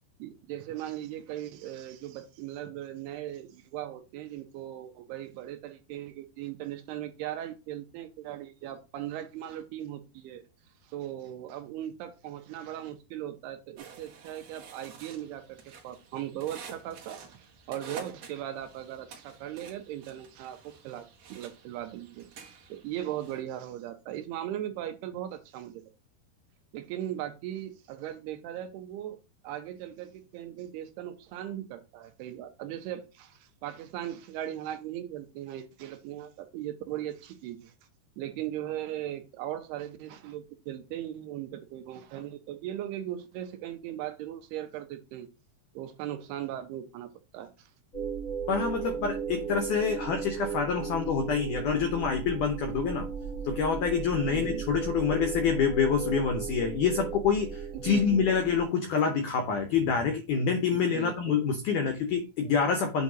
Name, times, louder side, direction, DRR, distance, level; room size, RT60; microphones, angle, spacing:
voice 1, 0.2-10.4 10.8-25.9 26.7-29.2 29.4-37.7 38.2-45.3 45.7-47.7 54.2-54.7 57.7-58.3 60.7-61.4, right 12 dB, 80° right, 2.6 m, -38 dB
sound 1, 13.8-23.4, right 6 dB, 60° right, 1.7 m, -49 dB
sound 2, 47.9-58.6, right 6 dB, 65° left, 0.7 m, -36 dB
voice 2, 48.5-53.1 53.4-63.0, left 6 dB, 90° left, 1.7 m, -27 dB
8.0 x 2.7 x 6.0 m
omnidirectional pair, 4.8 m